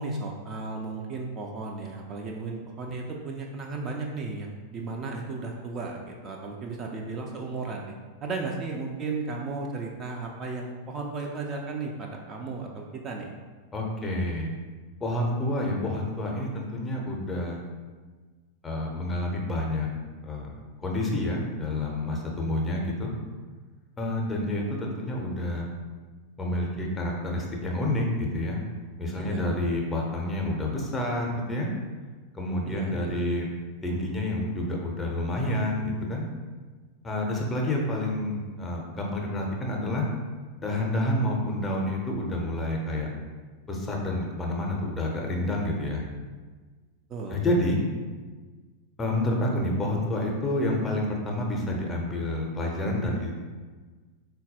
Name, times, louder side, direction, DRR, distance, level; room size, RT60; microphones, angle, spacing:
voice 1, 0.0-7.9 8.2-13.3 29.2-29.6 32.6-33.1 47.1-47.4, right 3 dB, 30° right, 0 dB, 0.3 m, -35 dB
voice 2, 13.7-14.5 15.0-17.6 18.6-19.9 20.2-20.5 20.8-23.1 24.0-25.7 26.4-28.6 29.0-31.7 32.3-33.5 33.8-36.3 37.0-40.0 40.6-43.1 43.7-46.0 47.3-47.8 49.0-53.4, left 1 dB, 15° left, -1 dB, 0.6 m, -28 dB
3.8 x 2.2 x 2.7 m, 1.4 s
figure-of-eight pair, 90°, 0 cm